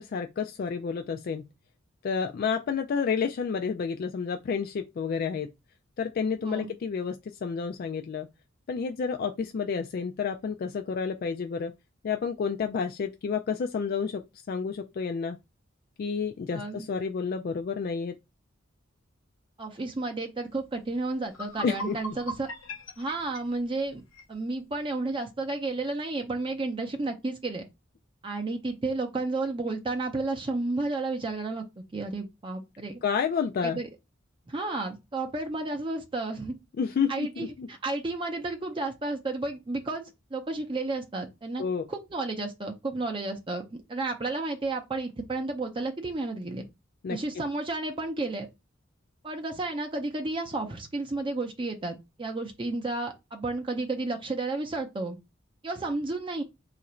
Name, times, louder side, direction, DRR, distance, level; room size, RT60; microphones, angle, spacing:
voice 1, 0.0-1.4 2.0-5.5 6.0-7.2 7.4-8.3 8.7-11.7 12.0-15.4 16.0-18.2 21.6-22.0 33.0-33.8 36.8-37.7 41.6-41.8 47.0-47.2, left 6 dB, 50° left, 0.3 m, -30 dB
voice 2, 16.5-16.8 19.6-22.5 23.0-24.0 24.3-27.7 28.2-33.0 33.6-33.9 34.5-36.6 37.1-41.6 41.9-46.7 47.1-48.5 49.2-55.2 55.6-56.4, right 2 dB, 25° right, 0.5 m, -32 dB
sound 1, 20.8-20.9 21.2-24.3, left 1 dB, 85° left, 0.8 m, -40 dB
2.9 x 2.5 x 4.2 m
head